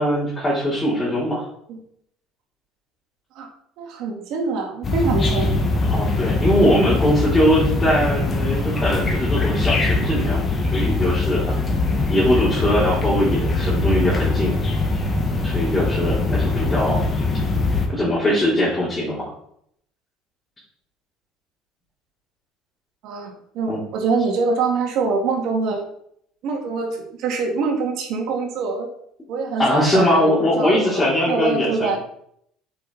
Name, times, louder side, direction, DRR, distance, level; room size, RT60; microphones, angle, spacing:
voice 1, 0.0-1.5 5.9-11.5 12.1-14.5 15.4-17.0 17.9-19.3 23.7-23.8 29.6-32.0, left 1 dB, 15° left, -8 dB, 3.7 m, -21 dB
voice 2, 3.8-5.5 11.9-12.1 23.0-25.8 26.4-28.9 29.3-31.0 31.3-32.0, right 4 dB, 65° right, 2 dB, 2.1 m, -24 dB
sound 1, 4.8-17.9, left 2 dB, 30° left, 1.7 m, -22 dB
8.2 x 6.2 x 4.1 m, 0.69 s
supercardioid pair, 105°, 0 cm